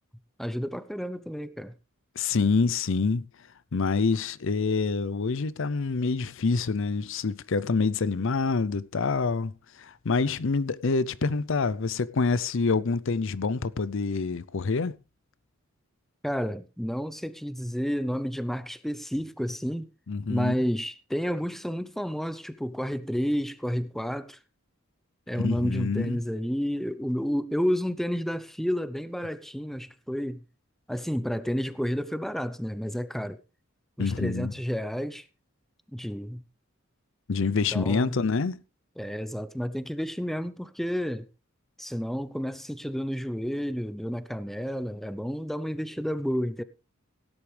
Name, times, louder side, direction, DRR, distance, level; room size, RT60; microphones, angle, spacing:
voice 1, 0.4-1.7 16.2-19.9 20.3-24.4 25.3-30.4 30.9-33.4 34.0-35.3 35.9-36.4 37.7-38.2 39.0-41.3 41.8-46.6, equal, ahead, 0.7 m, -30 dB
voice 2, 2.2-3.2 3.7-9.5 9.8-14.9 20.1-20.5 25.4-26.2 34.0-34.5 37.3-38.6, left 4 dB, 65° left, 0.6 m, -26 dB
17.5 x 10.5 x 3.4 m
head